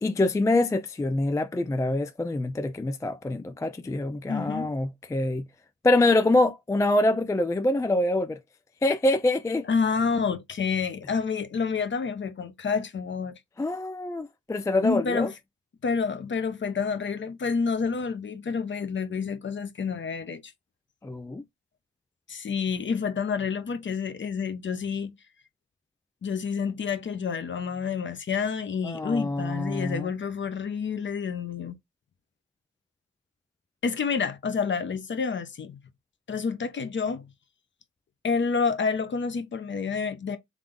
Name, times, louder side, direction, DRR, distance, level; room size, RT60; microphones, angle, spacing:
voice 1, 0.0-5.4 5.8-8.4 8.8-9.7 13.6-15.3 21.0-21.4 28.8-30.1, left 2 dB, 10° left, 0.4 m, -25 dB
voice 2, 4.3-4.7 9.7-13.4 14.8-15.3 15.8-20.5 22.3-25.1 26.2-31.7 33.8-35.8 36.3-37.3 38.2-40.4, left 5 dB, 40° left, 1.0 m, -28 dB
3.7 x 3.3 x 3.7 m
cardioid pair, 90°, 30 cm